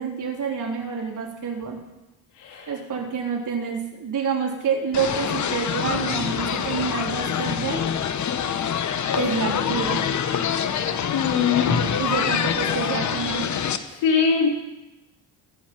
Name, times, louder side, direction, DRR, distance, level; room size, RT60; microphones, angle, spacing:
voice 1, 0.0-1.8 2.7-7.8 9.1-10.0 12.0-13.5, right 6 dB, 50° right, -1 dB, 3.8 m, -28 dB
sound 1, 4.9-13.8, left 8 dB, 45° left, 1.0 m, -25 dB
voice 2, 11.1-12.0 14.0-14.5, left 6 dB, 85° left, 0 dB, 3.1 m, -21 dB
22.5 x 9.0 x 4.4 m, 0.98 s
cardioid pair, 100°, 40 cm